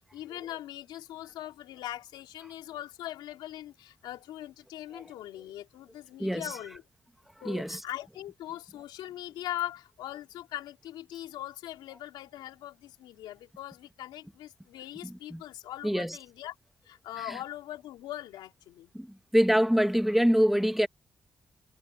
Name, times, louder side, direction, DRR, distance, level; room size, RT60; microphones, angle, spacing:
voice 1, 0.1-6.8 7.4-16.5 16.8-18.9, left 13 dB, 90° left, 3.2 m, -41 dB
voice 2, 6.2-6.5 7.4-7.8 15.0-15.4 15.8-16.2 17.3-17.4 18.9-20.9, equal, ahead, 2.0 m, -25 dB
supercardioid pair, 45°, 8 cm